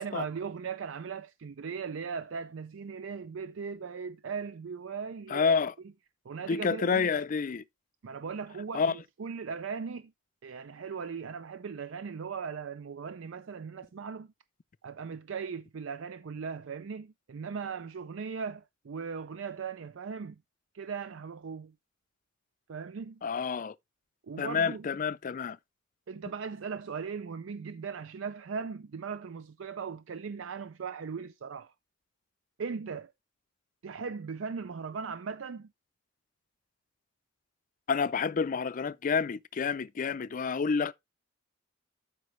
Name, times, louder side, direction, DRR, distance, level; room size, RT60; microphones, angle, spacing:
voice 1, 0.0-5.6 6.2-7.1 8.0-10.1 10.4-14.3 14.8-20.4 20.7-21.7 22.7-23.2 24.2-24.9 26.1-31.7 32.6-33.1 33.8-35.7, right 5 dB, 75° right, 0.5 m, -38 dB
voice 2, 5.3-5.7 6.5-7.6 8.7-8.9 23.2-23.7 24.4-25.6 37.9-40.9, left 5 dB, 40° left, 0.4 m, -29 dB
13.0 x 5.2 x 3.1 m
head